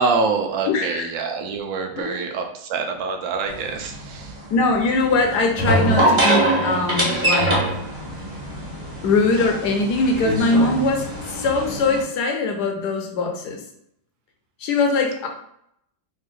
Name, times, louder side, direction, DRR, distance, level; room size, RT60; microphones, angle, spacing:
voice 1, 0.0-4.3, right 4 dB, 80° right, 4 dB, 1.4 m, -25 dB
voice 2, 0.7-1.1 1.9-2.2 4.5-7.6 9.0-13.6 14.6-15.3, left 3 dB, 70° left, 3 dB, 1.1 m, -21 dB
sound 1, 3.5-12.0, right 1 dB, 20° right, 1.1 m, -24 dB
3.7 x 2.5 x 4.1 m, 0.72 s
omnidirectional pair, 2.1 m